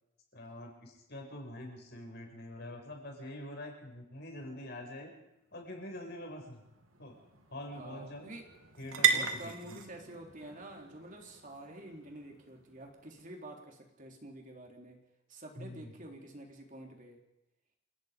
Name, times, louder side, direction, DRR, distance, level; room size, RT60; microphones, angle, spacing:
voice 1, 0.3-5.1 5.5-6.6 7.0-7.1 7.5-8.3 8.8-9.8 15.6-15.9, left 1 dB, 50° left, 1 dB, 6.6 m, -45 dB
sound 1, 5.4-13.3, right 7 dB, 75° right, 2.7 m, -37 dB
voice 2, 7.7-8.4 9.1-15.0 15.3-17.2, right 1 dB, 40° right, 2 dB, 3.8 m, -48 dB
28.5 x 18.5 x 5.3 m, 0.89 s
head